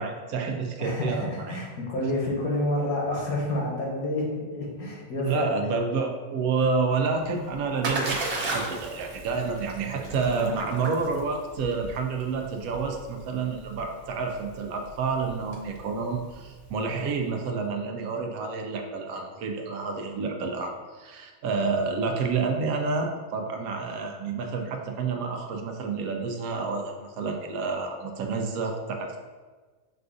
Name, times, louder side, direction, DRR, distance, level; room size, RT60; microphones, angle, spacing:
voice 1, 0.0-1.6 5.2-29.2, right 4 dB, 75° right, 4 dB, 1.0 m, -29 dB
voice 2, 0.8-5.7, left 1 dB, 80° left, -2 dB, 1.4 m, -29 dB
Splash splatter, 7.1-17.0, right 2 dB, 55° right, 0.8 m, -36 dB
6.6 x 2.5 x 2.4 m, 1.4 s
omnidirectional pair, 1.5 m